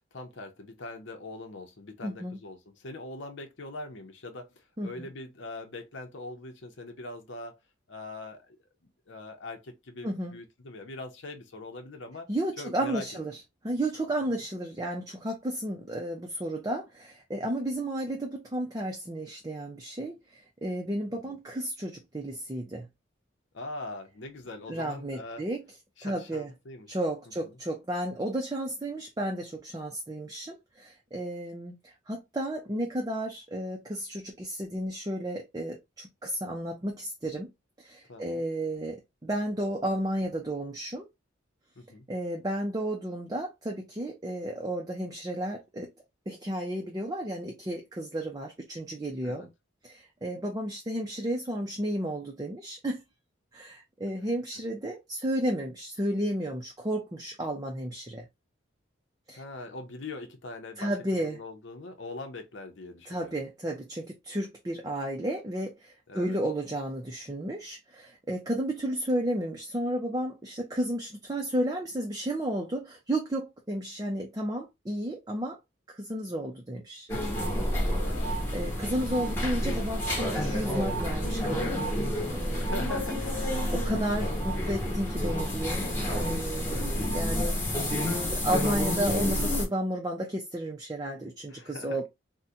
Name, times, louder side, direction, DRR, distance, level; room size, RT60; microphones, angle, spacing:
voice 1, 0.1-7.5 7.9-8.6 9.1-12.3 12.6-13.1 14.3-14.4 21.2-21.4 23.5-25.4 26.0-27.0 38.1-38.4 41.8-42.1 49.2-49.5 59.4-60.9 61.2-63.4 66.1-66.4 78.0-78.4 82.5-83.4 91.5-92.0, left 2 dB, 70° left, 0.7 m, -42 dB
voice 2, 2.0-2.4 4.8-5.1 10.0-10.4 12.3-22.9 24.7-25.6 26.0-26.5 26.9-37.5 37.8-41.1 42.1-45.9 46.3-49.5 49.8-53.0 53.5-58.3 59.3-59.4 60.8-61.4 63.1-75.6 75.9-77.1 78.5-81.9 82.2-82.7 83.7-87.9 88.3-92.1, right 1 dB, 20° right, 0.5 m, -33 dB
sound 1, 77.1-89.7, equal, 10° left, 1.2 m, -29 dB
3.7 x 2.2 x 2.7 m
head